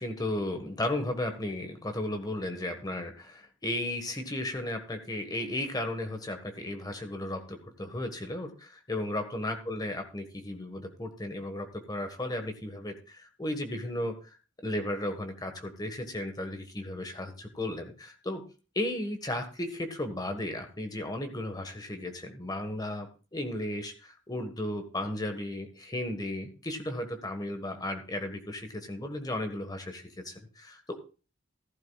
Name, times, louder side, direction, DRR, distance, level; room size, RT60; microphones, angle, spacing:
voice 1, 0.0-14.2 14.6-18.4 18.7-31.0, left 1 dB, 20° left, 6 dB, 1.5 m, -35 dB
14.5 x 12.0 x 2.4 m, 0.34 s
head